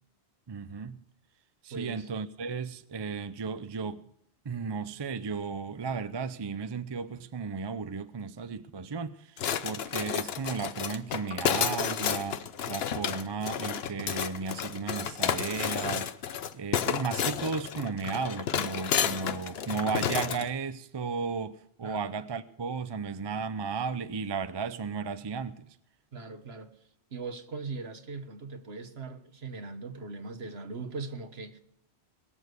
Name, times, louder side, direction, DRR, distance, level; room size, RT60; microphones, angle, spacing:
voice 1, 0.5-1.0 1.6-4.0 4.4-16.1 16.5-25.7, right 5 dB, 30° right, 0.5 m, -34 dB
voice 2, 1.7-2.1 21.8-22.0 26.1-26.7 27.1-31.6, right 4 dB, 65° right, 1.5 m, -40 dB
sound 1, 9.4-20.5, left 8 dB, 65° left, 1.0 m, -31 dB
21.5 x 7.3 x 8.1 m
omnidirectional pair, 1.1 m